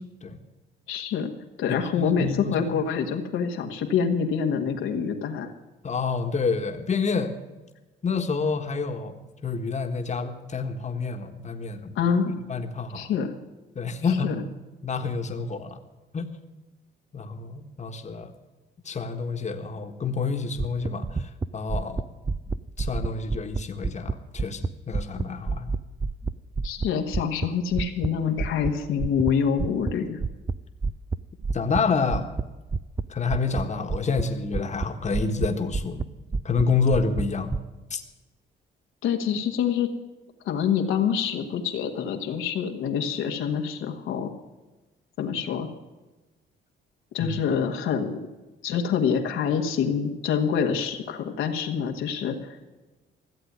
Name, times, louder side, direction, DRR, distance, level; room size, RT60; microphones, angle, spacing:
voice 1, 0.9-1.3 1.6-5.5 11.9-12.4 12.9-13.3 14.2-14.3 26.6-30.2 39.0-39.9 40.4-44.3 45.2-45.7 47.1-48.2 48.6-52.6, left 7 dB, 85° left, 3 dB, 1.7 m, -26 dB
voice 2, 1.7-2.7 5.8-7.3 8.0-9.2 9.4-11.9 12.5-13.1 13.7-14.3 14.8-15.8 16.1-16.3 17.1-18.3 18.8-22.0 22.8-25.8 31.5-32.3 33.1-36.0 36.4-37.6 37.9-38.0 47.2-47.3, left 4 dB, 35° left, 5 dB, 1.5 m, -28 dB
sound 1, 20.6-24.7 24.9-28.1 28.3-28.7 29.0-29.3 29.6-29.9 30.2-30.6 30.8-31.2 31.4-31.8 32.1-32.4 32.7-33.0 33.3-33.6 33.9-34.2 34.5-35.5 35.7-36.0 36.3-36.6 36.9-37.6, right 4 dB, 20° right, 0.5 m, -28 dB
15.0 x 7.9 x 9.5 m, 1.1 s
cardioid pair, 90°, 20 cm